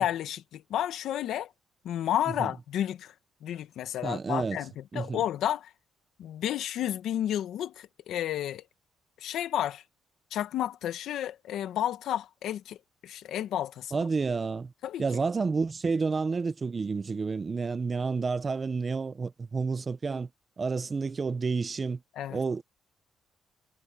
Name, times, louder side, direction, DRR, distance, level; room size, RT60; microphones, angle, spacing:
voice 1, 0.0-1.5 1.8-3.1 3.4-5.7 6.2-8.6 9.2-9.8 10.3-12.8 13.0-13.9 14.8-15.0 22.2-22.4, left 11 dB, 80° left, 1.7 m, -31 dB
voice 2, 4.0-4.6 4.9-5.2 13.9-14.7 15.0-20.3 20.6-22.0 22.3-22.6, right 4 dB, 35° right, 0.8 m, -30 dB
cardioid pair, 90°, 0 cm